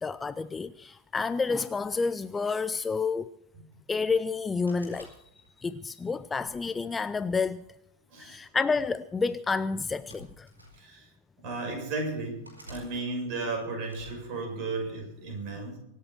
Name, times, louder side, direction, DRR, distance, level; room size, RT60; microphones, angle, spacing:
voice 1, 0.0-3.3 3.9-5.1 5.6-7.6 8.2-10.5, left 4 dB, 15° left, 0.5 m, -29 dB
sound 1, 4.7-5.7 6.4-7.5 8.5-8.8 9.8-10.8 11.5-11.6 12.4-12.9 13.8-14.2, right 1 dB, 80° right, 5.4 m, -50 dB
voice 2, 10.8-11.1 11.4-15.8, right 3 dB, 40° right, 7.1 m, -34 dB
24.5 x 8.3 x 6.2 m
figure-of-eight pair, 90°, 0 cm